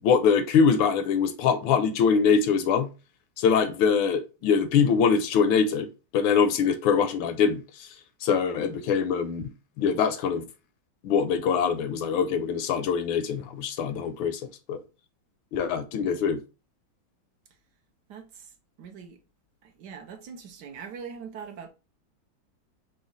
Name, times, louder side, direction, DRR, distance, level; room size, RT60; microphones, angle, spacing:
voice 1, 0.0-2.9 3.4-5.9 6.1-7.9 8.2-9.5 9.8-10.4 11.0-14.4 14.7-14.8 15.5-16.4, left 6 dB, 75° left, 1.3 m, -23 dB
voice 2, 18.1-18.5 18.8-19.2 19.6-21.7, right 6 dB, 65° right, 1.1 m, -42 dB
5.0 x 2.2 x 3.8 m
omnidirectional pair, 2.3 m